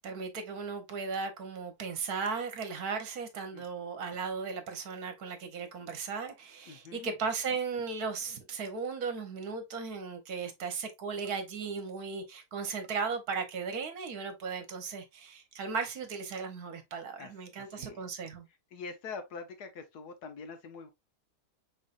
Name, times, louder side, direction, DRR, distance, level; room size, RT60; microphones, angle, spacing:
voice 1, 0.0-18.5, right 5 dB, 65° right, 1.3 m, -36 dB
voice 2, 6.7-7.1 17.2-18.0 18.7-20.9, left 4 dB, 65° left, 1.3 m, -44 dB
5.5 x 3.9 x 2.4 m
omnidirectional pair, 1.9 m